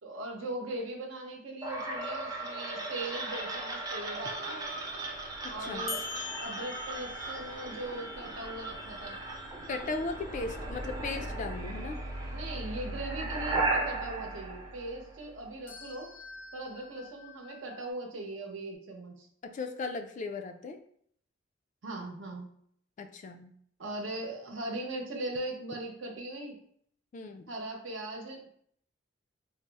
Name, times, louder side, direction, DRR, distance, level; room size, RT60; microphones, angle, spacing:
voice 1, 0.0-4.6 5.5-6.0 6.4-9.2 12.3-16.1 16.5-19.3 21.8-22.5 23.8-26.6 27.5-28.5, right 2 dB, 70° right, 0 dB, 0.8 m, -39 dB
sound 1, 1.6-15.5, right 2 dB, 20° right, 0.5 m, -36 dB
voice 2, 5.4-5.9 9.7-12.0 19.4-20.8 23.0-23.5 27.1-27.5, left 3 dB, 40° left, 6 dB, 0.3 m, -37 dB
sound 2, 5.9-9.7 15.7-17.9, left 5 dB, 80° left, 0.6 m, -45 dB
4.0 x 2.0 x 3.3 m, 0.64 s
head